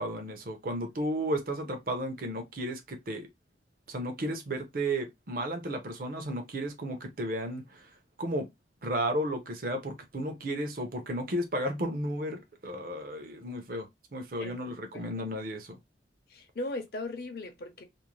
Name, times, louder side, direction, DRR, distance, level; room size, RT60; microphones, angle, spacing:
voice 1, 0.0-3.3 3.9-7.8 8.2-8.5 8.8-15.8, right 1 dB, 50° right, 0.6 m, -33 dB
voice 2, 14.4-15.0 16.3-17.8, left 2 dB, 55° left, 0.6 m, -38 dB
2.6 x 2.1 x 3.0 m
head